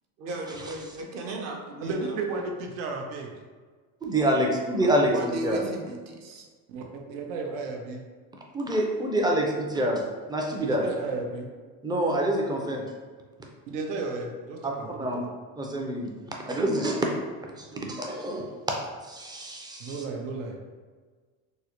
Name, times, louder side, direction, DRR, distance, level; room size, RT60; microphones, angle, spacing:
voice 1, 0.2-1.9 4.8-6.4, right 1 dB, 45° right, 1 dB, 0.6 m, -35 dB
voice 2, 1.8-3.3 6.7-8.0 10.6-11.5 13.7-15.3 19.8-20.6, right 3 dB, 90° right, 2 dB, 0.6 m, -33 dB
voice 3, 4.0-5.7 8.5-10.0 10.3-10.8 11.8-12.8 14.6-15.2 15.6-16.1 16.5-17.1 17.6-18.5 19.1-20.0, right 1 dB, 10° right, 0 dB, 0.3 m, -26 dB
3.6 x 2.0 x 2.9 m, 1.5 s
cardioid pair, 120°, 36 cm